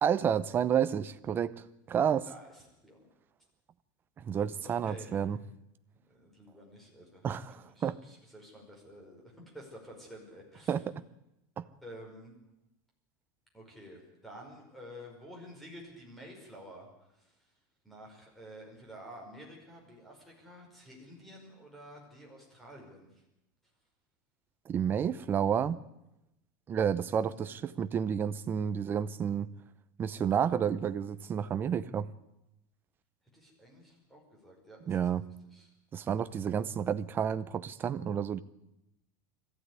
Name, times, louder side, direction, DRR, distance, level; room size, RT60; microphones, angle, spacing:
voice 1, 0.0-1.6 1.9-2.3 4.2-5.4 7.2-8.0 10.7-11.0 11.6-11.7 24.7-25.8 26.7-29.5 30.0-32.1 34.9-35.3 35.9-38.4, right 8 dB, 20° right, 13 dB, 0.7 m, -30 dB
voice 2, 2.2-3.1 4.6-5.2 6.1-7.3 7.7-10.8 11.8-12.3 13.5-17.4 17.8-23.2 27.3-27.5 33.3-35.0 35.5-35.7, equal, ahead, -1 dB, 5.2 m, -50 dB
21.5 x 15.0 x 9.7 m, 0.89 s
supercardioid pair, 175°, 11 cm